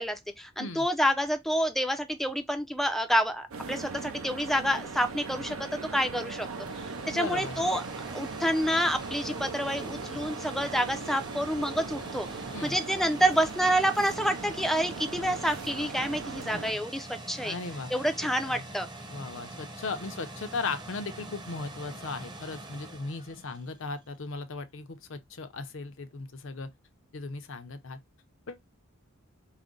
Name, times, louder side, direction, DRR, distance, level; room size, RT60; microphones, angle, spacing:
voice 1, 0.0-6.5 7.1-7.8 8.1-12.3 12.6-17.6 17.9-18.9, equal, ahead, 0.4 m, -28 dB
sound 1, 3.5-16.7, right 4 dB, 70° right, 0.7 m, -39 dB
sound 2, 5.9-24.0, right 2 dB, 20° right, 0.8 m, -45 dB
voice 2, 7.1-7.6 12.5-12.8 16.5-16.6 17.4-17.9 18.4-18.6 19.1-26.7 27.1-28.0 28.5-28.6, left 3 dB, 60° left, 0.6 m, -37 dB
4.9 x 2.1 x 3.7 m
head